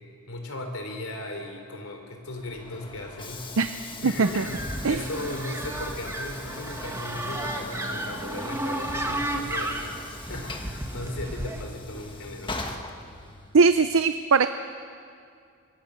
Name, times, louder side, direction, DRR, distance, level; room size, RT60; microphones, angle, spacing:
voice 1, 0.3-3.5 4.0-12.6, left 1 dB, 75° left, 4 dB, 3.6 m, -37 dB
Train / Sliding door, 2.3-13.7, left 3 dB, 20° left, 1.4 m, -41 dB
voice 2, 4.0-4.4 4.8-5.0 13.5-14.5, right 4 dB, 70° right, 10 dB, 0.6 m, -20 dB
sound 1, 4.2-11.6, right 1 dB, 15° right, 1.7 m, -33 dB
25.0 x 23.0 x 6.5 m, 2.3 s
head